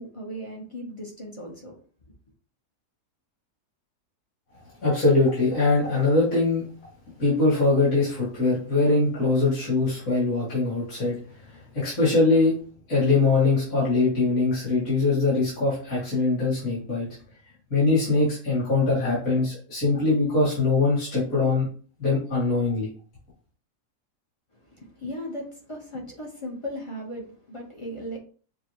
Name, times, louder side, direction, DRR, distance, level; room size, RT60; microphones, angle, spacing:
voice 1, 0.0-1.7 24.5-28.2, equal, 30° left, 0.6 m, -37 dB
voice 2, 4.8-6.6 7.2-11.2 11.5-12.5 12.9-17.1 17.7-21.7 22.0-22.9, left 3 dB, 55° left, 2.6 m, -22 dB
6.6 x 2.2 x 2.9 m
omnidirectional pair, 1.7 m